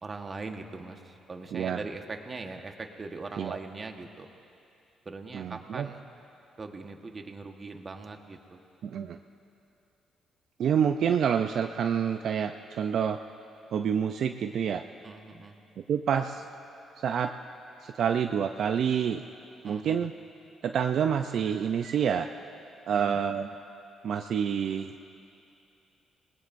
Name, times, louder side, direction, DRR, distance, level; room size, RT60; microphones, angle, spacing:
voice 1, 0.0-4.3 5.0-6.0 6.6-8.6 15.0-15.6 19.6-20.1 22.9-23.3, right 3 dB, 35° right, 4 dB, 1.3 m, -41 dB
voice 2, 5.3-5.9 8.8-9.2 10.6-13.2 13.7-14.8 15.8-16.4 17.0-17.3 17.8-19.2 19.6-20.1 20.6-22.3 22.9-23.5 24.0-24.9, right 8 dB, 65° right, 6 dB, 0.5 m, -28 dB
27.5 x 19.5 x 2.6 m, 2.6 s
cardioid pair, 90°, 0 cm